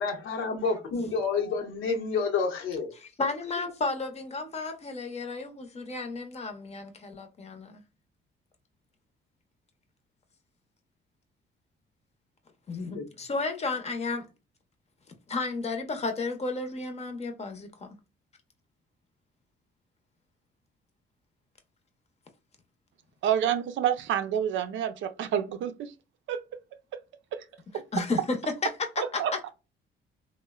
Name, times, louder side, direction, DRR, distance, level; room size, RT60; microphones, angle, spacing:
voice 1, 0.0-2.9 12.9-13.1, left 4 dB, 80° left, 0.8 m, -29 dB
voice 2, 3.0-7.8 12.7-14.3 15.3-18.0 27.9-29.2, left 3 dB, 35° left, 0.7 m, -33 dB
voice 3, 23.2-25.9 26.3-26.4 27.3-27.4 27.7-27.8 29.0-29.5, right 9 dB, 70° right, 0.5 m, -28 dB
3.0 x 2.1 x 2.2 m
cardioid pair, 90°, 20 cm